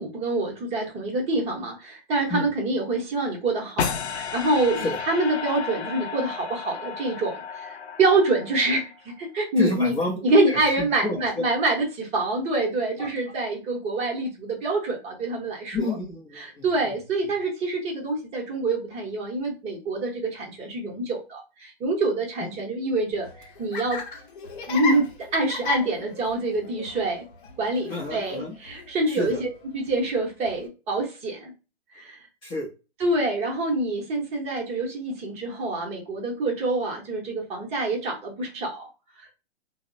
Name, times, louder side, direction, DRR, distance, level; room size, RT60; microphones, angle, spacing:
voice 1, 0.0-9.9 10.2-15.9 16.4-24.0 24.7-27.2 27.6-29.5 29.7-31.5 31.9-32.2 33.0-38.9, right 2 dB, 20° right, 1 dB, 0.7 m, -26 dB
sound 1, 3.8-9.0, left 6 dB, 85° left, 0.5 m, -33 dB
voice 2, 9.6-11.4 13.0-13.1 15.7-16.6 27.9-28.5 29.1-29.4 32.4-32.7, left 2 dB, 15° left, -3 dB, 0.5 m, -30 dB
Laughter, 23.1-30.7, left 4 dB, 50° left, 0.7 m, -36 dB
3.0 x 2.0 x 2.5 m, 0.31 s
hypercardioid pair, 120°, 32 cm